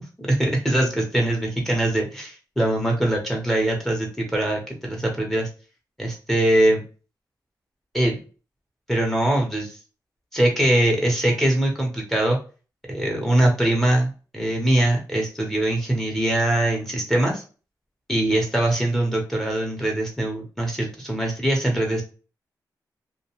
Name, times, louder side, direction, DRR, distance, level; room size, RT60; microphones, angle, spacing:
voice 1, 0.0-5.5 6.0-6.8 7.9-8.2 8.9-9.8 10.3-12.4 12.9-17.4 18.1-22.0, right 1 dB, 5° left, 0 dB, 0.8 m, -22 dB
2.4 x 2.1 x 2.9 m, 0.35 s
wide cardioid pair, 120°, 7 cm